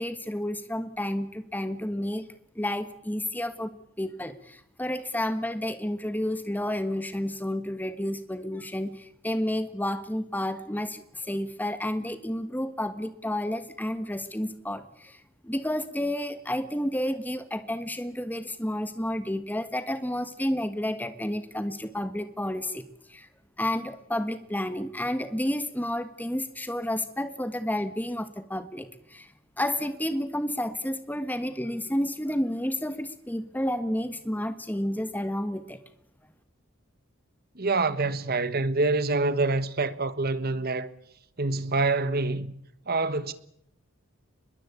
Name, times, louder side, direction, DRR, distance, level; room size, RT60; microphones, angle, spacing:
voice 1, 0.0-2.3 2.5-3.7 4.0-23.3 23.6-29.3 29.6-35.8, left 1 dB, 10° left, 1.5 m, -31 dB
voice 2, 37.5-40.9 41.4-42.5 42.9-43.3, right 3 dB, 45° right, 1.4 m, -26 dB
23.5 x 21.5 x 8.4 m
head